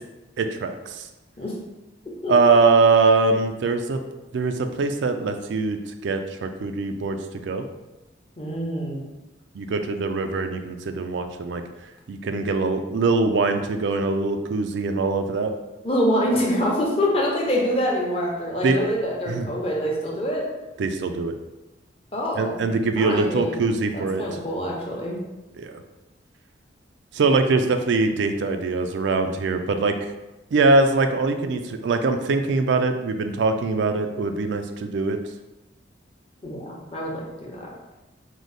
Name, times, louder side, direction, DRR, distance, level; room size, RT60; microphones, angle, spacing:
voice 1, 0.4-1.1 2.3-4.0 4.3-7.2 7.4-7.6 9.5-11.6 12.1-15.5 18.6-18.8 19.3-19.5 20.8-21.4 22.4-24.2 25.6-25.8 27.1-30.1 30.5-35.2, right 3 dB, 75° right, 7 dB, 0.4 m, -22 dB
voice 2, 8.4-9.0 15.8-20.4 22.1-22.6 23.0-23.6 23.9-25.2 36.4-37.7, equal, 30° left, -3 dB, 0.8 m, -25 dB
4.8 x 2.0 x 4.0 m, 1.0 s
head